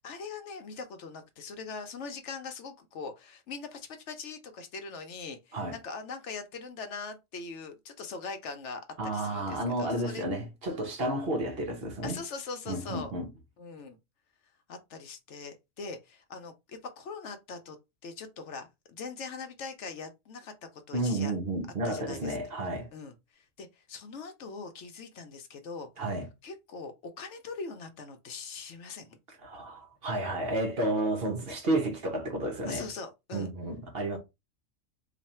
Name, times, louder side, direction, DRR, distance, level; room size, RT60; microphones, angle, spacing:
voice 1, 0.0-10.2 12.0-13.1 13.6-14.0 14.7-17.8 18.0-21.3 21.8-22.4 22.9-26.2 26.4-29.2 32.7-33.5, left 4 dB, 65° left, 0.9 m, -42 dB
voice 2, 9.0-12.2 12.7-13.3 20.9-22.9 26.0-26.3 29.4-32.9 33.3-34.2, right 1 dB, 50° right, 1.0 m, -31 dB
3.3 x 2.4 x 4.1 m
omnidirectional pair, 1.4 m